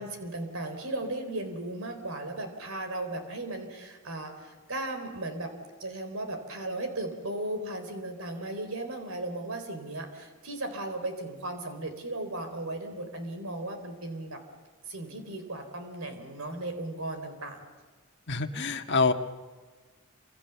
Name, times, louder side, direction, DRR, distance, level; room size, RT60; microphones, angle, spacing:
voice 1, 0.0-5.5 5.8-14.4 14.9-17.7, right 2 dB, 75° right, 7 dB, 4.1 m, -36 dB
voice 2, 18.3-19.1, left 4 dB, 55° left, 4 dB, 1.7 m, -26 dB
28.5 x 26.0 x 7.2 m, 1.3 s
head